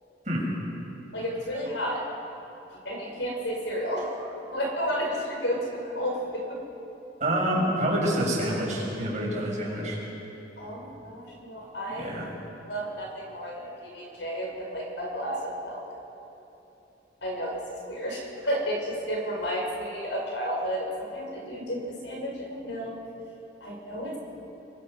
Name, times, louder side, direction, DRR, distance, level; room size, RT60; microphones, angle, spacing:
voice 1, 1.1-2.1 2.7-6.6 10.6-12.1 12.6-15.8 17.2-23.0 23.6-24.2, equal, 80° left, -1 dB, 5.6 m, -32 dB
voice 2, 7.2-10.0 12.0-12.3, right 1 dB, 40° right, -4 dB, 6.3 m, -27 dB
23.5 x 23.5 x 5.5 m, 2.9 s
head